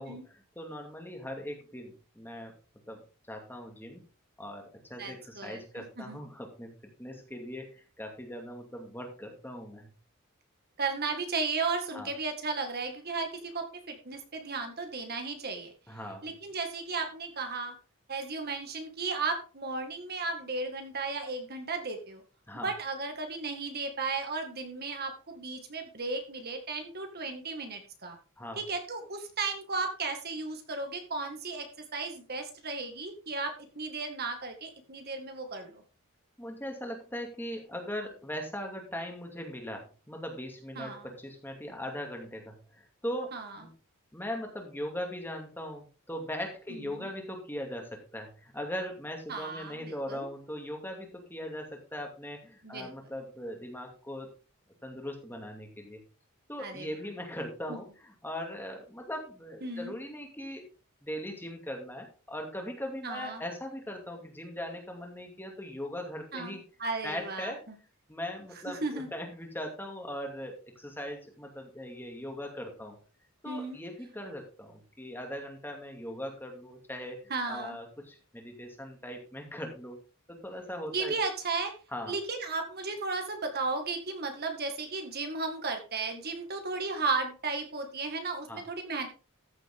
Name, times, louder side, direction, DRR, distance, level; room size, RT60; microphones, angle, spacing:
voice 1, 0.0-2.5 2.9-3.0 3.3-4.0 4.4-9.9 11.9-12.1 15.9-16.3 22.5-22.7 28.4-28.6 36.4-43.7 44.1-54.3 54.8-56.0 56.5-60.6 61.0-66.6 67.0-67.6 68.1-73.0 73.4-77.2 77.5-80.0 80.3-81.1 81.9-82.2 88.5-88.6, equal, 10° left, 2 dB, 2.5 m, -40 dB
voice 2, 5.0-6.2 10.8-15.7 16.2-17.7 18.1-22.2 22.6-28.2 28.5-35.8 40.8-41.1 43.3-43.6 46.7-47.1 49.3-50.3 52.6-52.9 56.6-56.9 57.7-57.8 59.6-59.9 63.0-63.4 66.3-67.5 68.7-69.1 73.5-73.8 77.3-77.8 80.9-81.7 82.1-89.1, right 3 dB, 45° right, 5 dB, 1.9 m, -35 dB
14.0 x 7.5 x 3.7 m, 0.34 s
head